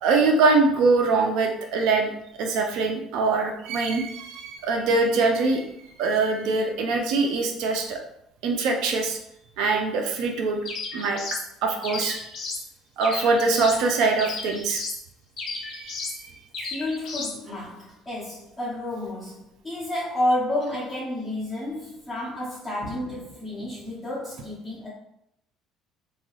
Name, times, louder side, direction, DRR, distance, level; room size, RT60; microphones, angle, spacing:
voice 1, 0.0-2.1 2.4-5.7 6.0-8.0 8.4-9.2 9.6-10.6 10.9-11.2 11.6-12.2 13.0-14.8 15.5-16.3, right 3 dB, 75° right, 3 dB, 0.5 m, -23 dB
sound 1, 10.7-11.5 11.8-12.7 13.0-13.8 14.2-15.0 15.4-16.2 16.5-17.4, left 3 dB, 60° left, 0.8 m, -34 dB
voice 2, 16.6-24.9, left 1 dB, 5° left, -11 dB, 1.0 m, -30 dB
2.8 x 2.3 x 3.0 m, 0.77 s
supercardioid pair, 95°, 0 cm